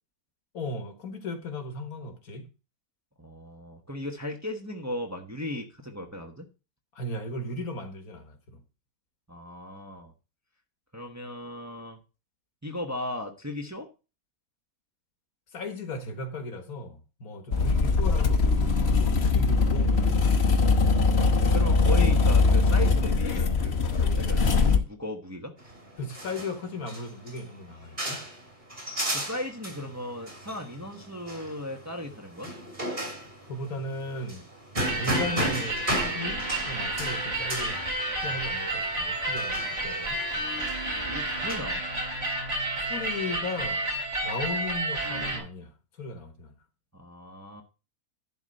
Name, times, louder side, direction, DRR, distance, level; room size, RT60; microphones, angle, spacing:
voice 1, 0.5-2.5 6.9-8.6 15.5-20.7 26.0-28.3 33.0-33.2 33.5-34.4 34.8-37.8 38.2-40.2 42.8-43.8 44.2-45.7 46.0-46.6, left 2 dB, 75° left, 1.9 m, -36 dB
voice 2, 3.2-6.5 9.3-10.1 10.9-12.0 12.6-13.9 17.5-17.7 21.5-24.4 24.7-25.5 29.1-32.5 40.3-40.8 41.1-41.8 46.9-47.6, left 1 dB, 10° right, 1.1 m, -37 dB
sound 1, 17.5-24.8, left 4 dB, 50° left, 1.2 m, -22 dB
sound 2, 25.6-41.5, right 1 dB, 30° right, 3.1 m, -35 dB
sound 3, 34.8-45.4, right 2 dB, 50° right, 3.4 m, -31 dB
11.0 x 4.1 x 6.6 m
omnidirectional pair, 1.6 m